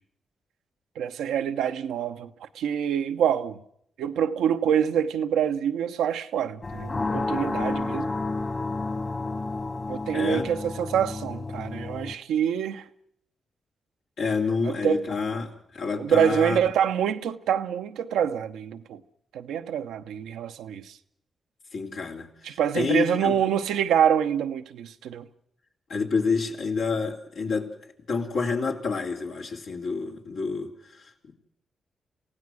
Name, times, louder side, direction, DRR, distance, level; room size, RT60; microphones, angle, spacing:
voice 1, 1.0-3.6 4.0-8.1 9.9-12.8 14.6-15.0 16.0-19.0 19.3-21.0 22.4-25.3, right 9 dB, 85° right, 0.8 m, -26 dB
sound 1, 6.6-12.1, left 3 dB, 45° left, 2.3 m, -31 dB
voice 2, 10.1-10.5 14.2-16.6 21.7-23.3 25.9-27.7 28.1-31.1, left 4 dB, 80° left, 3.0 m, -28 dB
28.0 x 16.0 x 6.3 m
hypercardioid pair, 40°, 0 cm